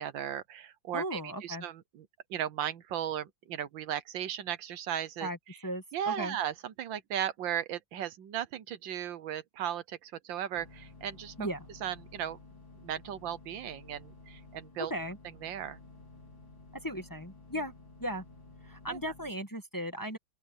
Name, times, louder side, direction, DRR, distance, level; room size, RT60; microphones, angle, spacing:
voice 1, 0.0-2.0 2.3-5.3 5.9-11.3 11.8-12.4 12.8-14.9 15.4-15.8 18.9-19.0, right 10 dB, 75° right, 1.6 m, -36 dB
voice 2, 0.9-1.6 5.2-5.4 5.6-6.4 11.4-11.6 14.9-15.2 16.8-17.7 18.0-18.2 18.6-20.2, equal, 10° left, 1.5 m, -36 dB
sound 1, 10.6-19.3, left 3 dB, 80° left, 4.9 m, -53 dB
open air
omnidirectional pair, 2.1 m